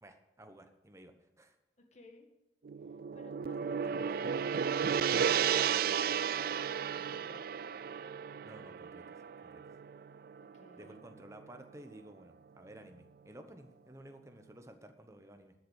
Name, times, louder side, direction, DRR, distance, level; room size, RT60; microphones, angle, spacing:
voice 1, 0.0-1.6 8.4-9.0 9.5-9.6 10.8-15.5, right 1 dB, 15° right, 7 dB, 1.1 m, -54 dB
voice 2, 1.9-2.3 3.1-7.6 10.4-11.0, left 1 dB, 40° left, 3 dB, 1.8 m, -57 dB
Gong, 2.6-11.0, right 7 dB, 55° right, 0.3 m, -33 dB
12.5 x 7.1 x 8.1 m, 0.92 s
head